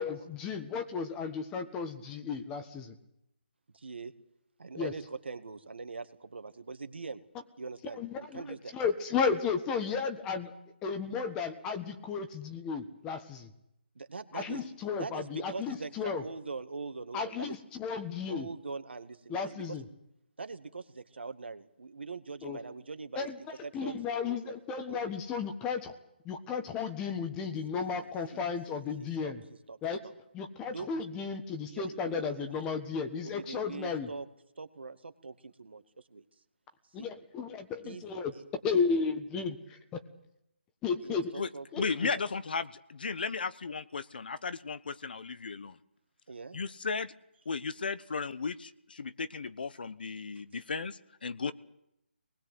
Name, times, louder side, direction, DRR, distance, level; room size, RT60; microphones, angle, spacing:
voice 1, 0.0-2.9 4.7-4.9 7.9-8.4 8.7-10.5 10.8-13.5 14.3-16.2 17.1-18.5 19.3-19.8 22.4-22.6 23.2-23.4 23.7-25.9 26.2-29.4 29.8-30.0 30.3-34.1 36.9-38.3 38.6-39.5 40.8-41.3 41.7-42.1, left 5 dB, 10° left, 7 dB, 1.4 m, -34 dB
voice 2, 3.7-4.1 4.6-7.2 7.6-8.8 9.8-10.0 14.0-14.6 15.0-17.6 18.3-19.8 20.4-24.6 24.9-25.0 27.7-29.3 29.7-29.8 30.0-30.1 30.7-31.1 31.6-32.5 33.2-34.3 34.6-35.8 36.1-36.2 37.0-37.1 37.8-38.0 38.3-38.4 41.0-41.7 41.9-42.2 46.3-46.6 50.5-50.6 51.4-51.5, right 4 dB, 75° right, 8 dB, 2.0 m, -43 dB
voice 3, 41.8-45.7 46.5-47.1 47.5-51.5, left 5 dB, 55° left, 14 dB, 1.1 m, -35 dB
24.0 x 20.0 x 8.0 m, 0.81 s
hypercardioid pair, 165°, 6 cm